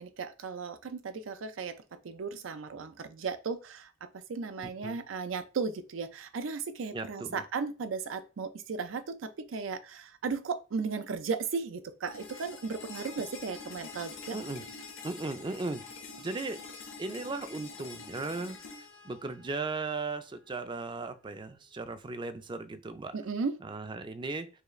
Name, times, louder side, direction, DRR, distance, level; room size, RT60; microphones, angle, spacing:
voice 1, 0.0-1.8 2.0-14.3 23.1-23.5, right 5 dB, 85° right, 0.5 m, -36 dB
voice 2, 4.6-5.0 6.9-7.4 14.3-14.6 15.0-15.8 16.2-16.6 17.0-23.1 23.6-24.5, right 3 dB, 25° right, 0.4 m, -37 dB
sound 1, 12.1-20.1, left 4 dB, 75° left, 0.8 m, -46 dB
4.6 x 2.5 x 3.1 m
head